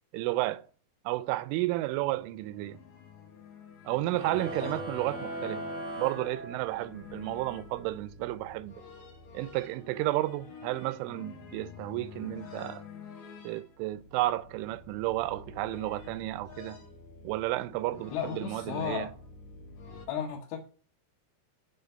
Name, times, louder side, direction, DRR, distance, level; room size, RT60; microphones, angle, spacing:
voice 1, 0.1-0.6 1.1-2.8 3.9-5.6 6.0-8.8 9.3-12.8 13.4-16.8 17.2-19.1, right 17 dB, 85° right, 3.1 m, -32 dB
sound 1, 1.8-20.1, left 5 dB, 60° left, 2.0 m, -48 dB
sound 2, 4.1-7.1, right 1 dB, 70° right, 0.7 m, -39 dB
voice 2, 18.1-19.2 20.1-20.6, left 8 dB, 80° left, 3.4 m, -34 dB
7.5 x 6.4 x 7.8 m
omnidirectional pair, 5.5 m